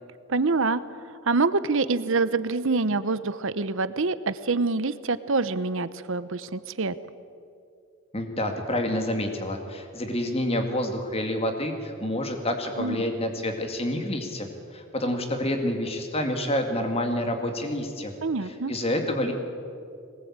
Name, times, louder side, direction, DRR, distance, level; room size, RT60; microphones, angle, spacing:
voice 1, 0.3-0.8 1.3-6.9 12.8-13.0 18.2-18.7, right 3 dB, 60° right, 14 dB, 0.8 m, -25 dB
voice 2, 8.1-14.5 14.7-18.1 18.4-19.3, left 1 dB, 25° left, 4 dB, 2.2 m, -28 dB
22.0 x 19.0 x 8.8 m, 2.5 s
head